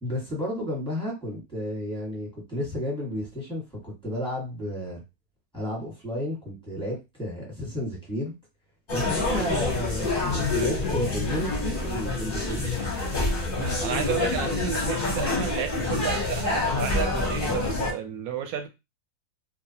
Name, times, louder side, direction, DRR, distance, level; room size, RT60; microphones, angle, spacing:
voice 1, 0.0-5.0 5.5-8.3 8.9-12.6, equal, 5° left, -4 dB, 1.0 m, -32 dB
sound 1, 8.9-17.9, left 2 dB, 40° left, 0.9 m, -27 dB
voice 2, 13.6-18.7, right 9 dB, 70° right, 6 dB, 0.9 m, -32 dB
2.8 x 2.2 x 2.7 m, 0.24 s
omnidirectional pair, 1.8 m